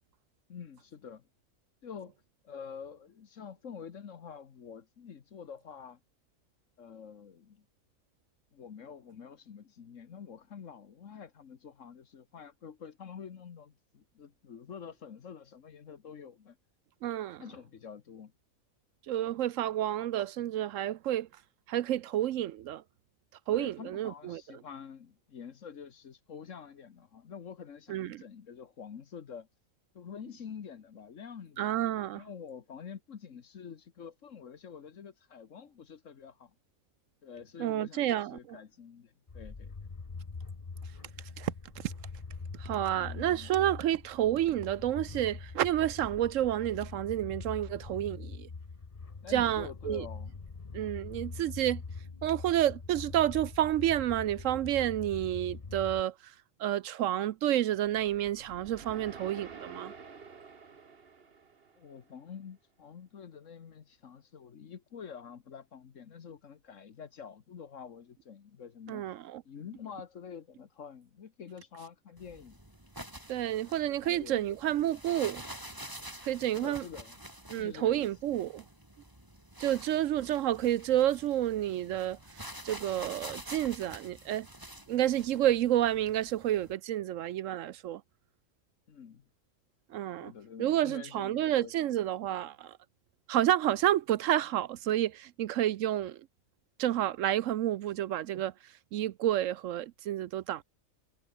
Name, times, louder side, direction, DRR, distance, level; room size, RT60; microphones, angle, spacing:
voice 1, 0.5-1.3 1.8-2.2 2.4-6.0 6.8-7.7 8.5-16.6 17.4-18.3 23.5-29.5 29.9-36.5 37.2-39.7 42.8-43.6 49.2-50.4 61.8-69.0 69.4-72.6 73.7-74.6 74.8-75.0 76.6-77.2 77.5-78.3 88.9-89.3 90.2-92.0, left 7 dB, 65° left, 1.5 m, -47 dB
voice 2, 17.0-17.4 19.1-21.3 21.7-22.8 23.5-24.4 27.9-28.2 31.6-32.2 37.6-38.6 41.4-41.9 42.6-48.5 49.3-50.1 50.7-51.8 52.2-56.3 56.6-59.9 68.9-69.4 73.3-75.4 76.2-76.8 77.5-78.6 79.6-84.5 84.9-88.0 89.9-90.3 90.6-92.8 93.3-96.2 96.8-100.6, right 12 dB, 70° right, 0.9 m, -30 dB
sound 1, 39.3-56.0, left 4 dB, 30° left, 1.1 m, -43 dB
sound 2, 57.9-62.1, right 5 dB, 45° right, 1.7 m, -50 dB
sound 3, 72.2-86.7, right 1 dB, 15° right, 4.8 m, -48 dB
omnidirectional pair, 1.5 m